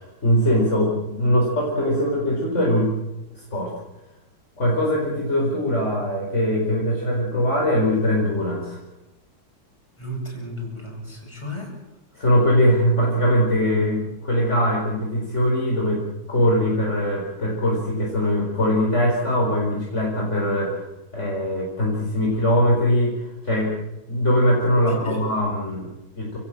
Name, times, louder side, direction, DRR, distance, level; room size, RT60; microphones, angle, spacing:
voice 1, 0.0-2.9 3.3-3.7 4.6-8.8 12.1-16.0 16.3-20.9 21.1-23.7 24.1-26.4, equal, 35° left, -3 dB, 5.0 m, -21 dB
voice 2, 10.0-11.7 24.9-25.2, equal, 15° left, 0 dB, 8.1 m, -33 dB
29.5 x 18.0 x 7.6 m, 1.0 s
omnidirectional pair, 2.2 m